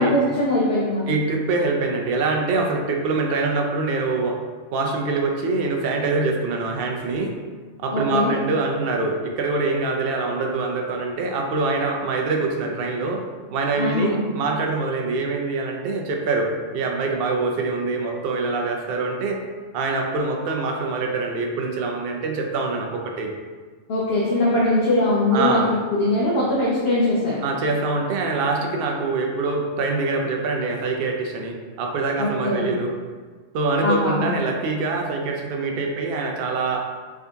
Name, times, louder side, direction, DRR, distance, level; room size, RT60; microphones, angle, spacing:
voice 1, 0.0-1.0 7.9-8.3 13.8-14.2 23.9-25.6 25.9-27.4 32.2-32.7 33.8-34.3, left 2 dB, 55° left, -8 dB, 0.9 m, -21 dB
voice 2, 1.1-4.4 4.7-7.3 7.8-13.2 13.5-19.4 19.7-23.3 25.3-25.7 27.4-32.9 33.5-36.9, right 3 dB, 60° right, 1 dB, 0.6 m, -24 dB
3.6 x 2.7 x 3.4 m, 1.5 s
omnidirectional pair, 1.3 m